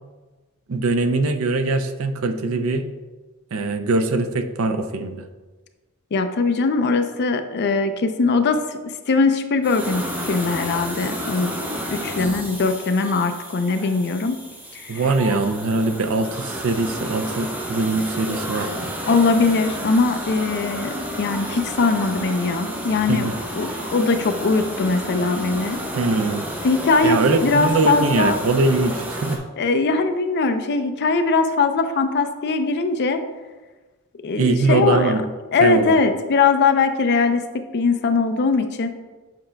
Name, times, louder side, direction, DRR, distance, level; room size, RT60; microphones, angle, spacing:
voice 1, 0.7-2.9 3.5-5.2 14.9-18.9 23.1-23.3 26.0-26.5 27.0-29.4 34.3-35.2 35.6-35.9, right 3 dB, 70° right, 8 dB, 0.5 m, -22 dB
voice 2, 6.1-8.6 9.1-11.6 11.9-14.4 14.8-15.0 19.1-23.3 23.6-25.8 26.6-28.4 29.6-33.2 34.2-35.2 35.5-38.9, left 4 dB, 50° left, 8 dB, 0.4 m, -21 dB
sound 1, 9.6-29.4, equal, 10° right, 0.8 m, -31 dB
7.7 x 5.6 x 2.2 m, 1.3 s
head